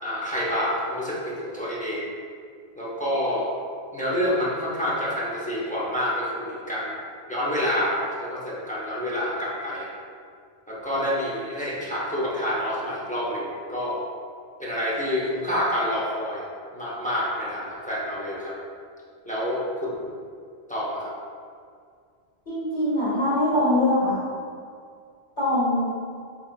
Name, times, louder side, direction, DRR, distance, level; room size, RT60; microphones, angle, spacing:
voice 1, 0.0-2.1 2.8-3.5 3.9-7.0 7.3-9.9 10.7-14.0 14.6-18.5 19.3-20.2 20.7-21.1, equal, 10° left, -8 dB, 0.4 m, -28 dB
voice 2, 22.4-24.2 25.4-25.9, left 1 dB, 40° left, -12 dB, 1.6 m, -22 dB
3.8 x 3.0 x 2.4 m, 2.2 s
omnidirectional pair, 1.1 m